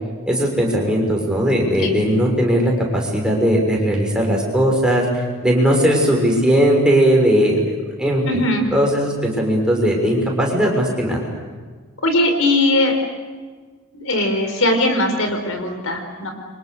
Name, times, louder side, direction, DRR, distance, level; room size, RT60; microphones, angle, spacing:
voice 1, 0.3-7.6 8.0-8.2 8.7-11.3, equal, 5° right, -1 dB, 6.2 m, -18 dB
voice 2, 8.2-8.7 12.0-12.9 13.9-16.3, left 1 dB, 70° left, 5 dB, 4.6 m, -19 dB
30.0 x 25.5 x 6.7 m, 1.5 s
head